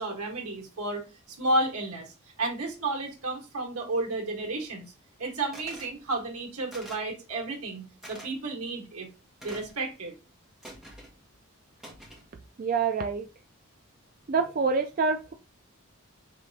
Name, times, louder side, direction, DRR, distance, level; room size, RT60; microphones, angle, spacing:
voice 1, 0.0-4.9 5.2-9.1 9.4-10.1, right 2 dB, 85° right, 1.5 m, -32 dB
sound 1, 5.5-5.9 6.7-7.1 8.0-8.3 9.4-9.8 10.6-11.1 11.8-12.3, equal, ahead, 1.1 m, -46 dB
voice 2, 12.6-13.2 14.3-15.3, right 4 dB, 40° right, 0.3 m, -26 dB
5.1 x 3.2 x 2.7 m
head